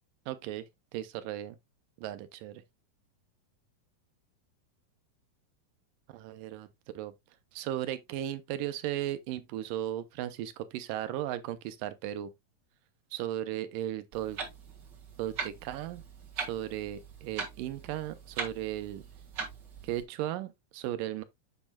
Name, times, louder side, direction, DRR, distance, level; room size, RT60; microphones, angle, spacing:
voice 1, 0.3-0.7 0.9-1.6 2.0-2.6 6.1-6.7 7.0-7.1 7.5-12.3 13.1-14.4 15.2-16.0 16.4-19.0 19.8-21.2, right 12 dB, 85° right, 2.2 m, -36 dB
Clock, 14.1-20.0, right 5 dB, 40° right, 1.7 m, -41 dB
7.3 x 7.1 x 2.2 m
omnidirectional pair, 4.0 m